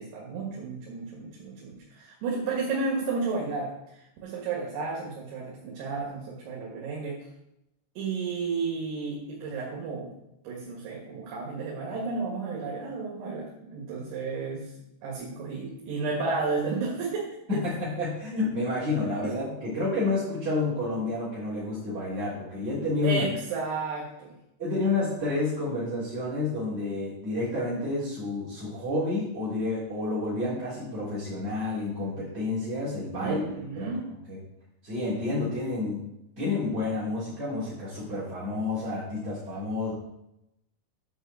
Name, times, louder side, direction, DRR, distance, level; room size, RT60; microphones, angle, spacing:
voice 1, 0.0-7.2 8.0-10.1 10.4-14.7 15.0-17.4 19.2-19.3 23.0-24.3 33.2-34.1, right 4 dB, 70° right, -3 dB, 4.0 m, -32 dB
voice 2, 17.5-23.2 24.6-33.9 34.3-34.4 34.8-36.0 36.4-39.9, left 2 dB, 15° right, -10 dB, 2.9 m, -29 dB
8.0 x 5.7 x 7.5 m, 0.85 s
omnidirectional pair, 5.6 m